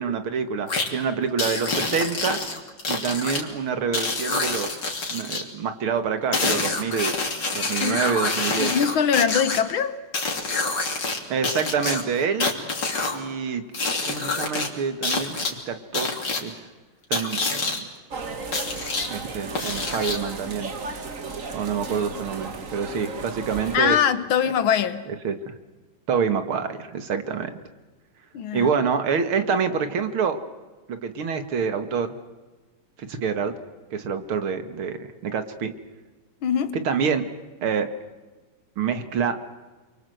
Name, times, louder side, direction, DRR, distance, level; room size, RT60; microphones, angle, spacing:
voice 1, 0.0-2.4 2.9-4.7 5.1-7.1 7.5-8.7 11.3-12.5 13.1-16.1 16.4-16.5 17.1-17.9 19.1-20.7 21.5-24.0 25.1-25.5 26.1-27.5 28.5-30.4 30.9-32.1 33.0-33.5 33.9-35.7 36.7-37.3 37.6-37.9 38.8-39.4, right 6 dB, 85° right, 2.6 m, -27 dB
sound 1, 0.7-0.9 1.4-3.4 3.9-5.4 6.3-9.6 10.1-11.2 11.4-13.2 13.7-14.7 15.0-15.5 15.9-16.4 17.1-17.8 18.5-19.1 19.5-20.3, left 3 dB, 55° left, 3.8 m, -26 dB
voice 2, 8.6-10.0 23.7-25.0 28.3-28.7 36.4-36.8, left 8 dB, 75° left, 1.9 m, -22 dB
sound 2, 18.1-23.8, right 4 dB, 40° right, 2.0 m, -35 dB
28.5 x 23.5 x 7.9 m
omnidirectional pair, 2.3 m